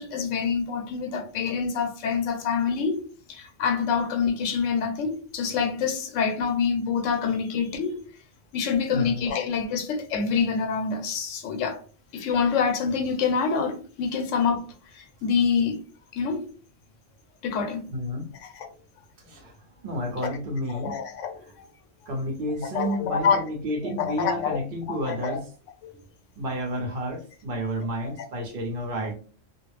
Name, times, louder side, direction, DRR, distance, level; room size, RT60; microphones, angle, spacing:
voice 1, 0.0-3.0 3.3-8.0 8.5-11.8 12.1-15.8 16.1-16.5 17.4-17.9 18.4-18.7 20.2-20.3 20.7-21.4 22.6-23.4 23.8-24.6 24.9-25.4 25.8-26.0, left 6 dB, 75° left, 0.9 m, -26 dB
voice 2, 8.9-9.2 17.9-18.3 19.2-19.6 19.8-21.0 22.1-25.5 26.4-29.1, equal, 50° right, 0.8 m, -30 dB
2.4 x 2.0 x 3.0 m
omnidirectional pair, 1.3 m